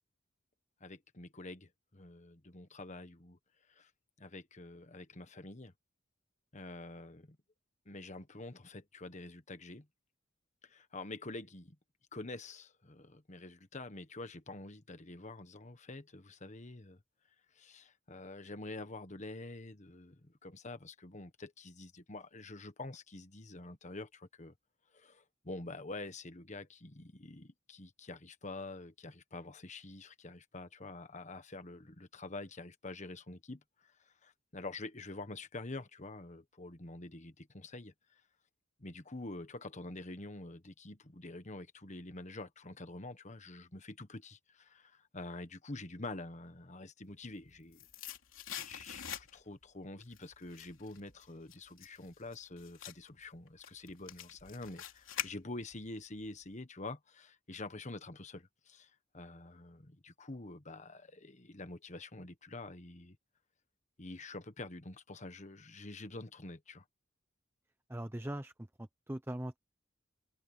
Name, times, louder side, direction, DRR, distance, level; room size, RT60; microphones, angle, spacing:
voice 1, 0.8-3.4 3.7-3.9 4.2-5.7 6.5-7.4 7.8-9.9 10.6-11.7 12.1-17.0 17.5-24.5 24.9-38.2 38.8-47.9 48.6-63.2 64.0-66.8, left 2 dB, 35° left, 1.4 m, -47 dB
sound 1, 47.2-49.6 50.0-55.9 56.2-56.3, left 9 dB, 75° left, 3.3 m, -45 dB
voice 2, 67.9-69.6, right 1 dB, 10° right, 0.7 m, -41 dB
head